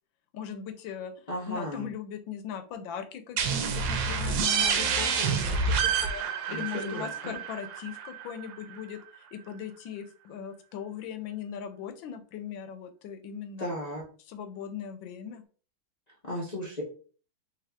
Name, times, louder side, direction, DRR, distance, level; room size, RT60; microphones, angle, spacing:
voice 1, 0.3-13.7 14.2-15.4, left 8 dB, 85° left, 8 dB, 1.4 m, -39 dB
voice 2, 1.3-1.8 6.5-7.3 13.6-14.0 16.3-16.8, left 1 dB, 45° left, -4 dB, 0.5 m, -35 dB
sound 1, 3.4-8.8, right 6 dB, 75° right, 1.3 m, -28 dB
3.4 x 3.0 x 3.5 m, 0.40 s
omnidirectional pair, 2.1 m